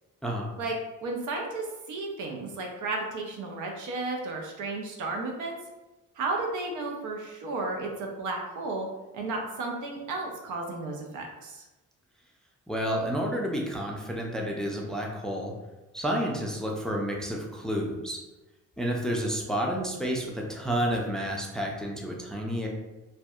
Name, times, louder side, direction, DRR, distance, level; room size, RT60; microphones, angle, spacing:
voice 1, 1.0-5.6 6.2-8.9 9.1-11.6, right 3 dB, 80° right, 1 dB, 0.6 m, -33 dB
voice 2, 12.7-15.5 15.9-18.2 18.8-22.7, equal, ahead, -1 dB, 0.3 m, -30 dB
2.6 x 2.1 x 2.3 m, 1.1 s
cardioid pair, 90°, 30 cm